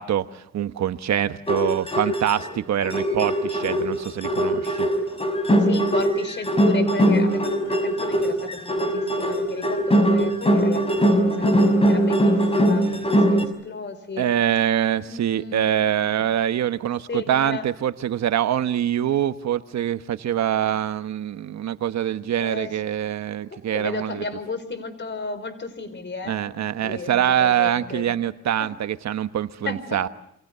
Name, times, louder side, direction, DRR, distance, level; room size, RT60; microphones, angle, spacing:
voice 1, 0.0-4.9 14.2-24.2 26.3-30.1, right 10 dB, 65° right, 11 dB, 1.2 m, -24 dB
sound 1, 1.5-2.5 2.8-13.5, right 1 dB, 20° left, 5.6 m, -21 dB
voice 2, 5.6-11.5 11.8-14.3 15.0-16.2 17.1-17.6 22.4-22.7 23.5-28.1 28.6-28.7 29.6-30.0, left 4 dB, 40° left, 13 dB, 4.7 m, -34 dB
29.0 x 27.0 x 6.8 m, 0.76 s
cardioid pair, 90°, 30 cm